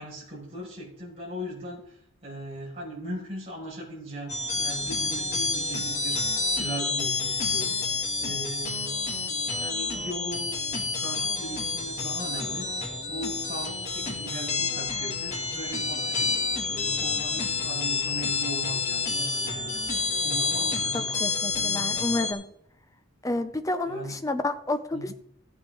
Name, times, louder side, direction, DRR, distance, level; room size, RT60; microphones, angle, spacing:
voice 1, 0.0-7.8 8.2-16.3 16.7-21.2 23.8-24.2 24.9-25.1, right 1 dB, 25° right, -6 dB, 5.6 m, -39 dB
sound 1, 4.3-22.3, left 3 dB, 30° left, 1.8 m, -29 dB
voice 2, 20.9-22.4 23.2-25.1, left 2 dB, 15° left, 9 dB, 0.7 m, -30 dB
15.0 x 8.8 x 3.9 m, 0.71 s
head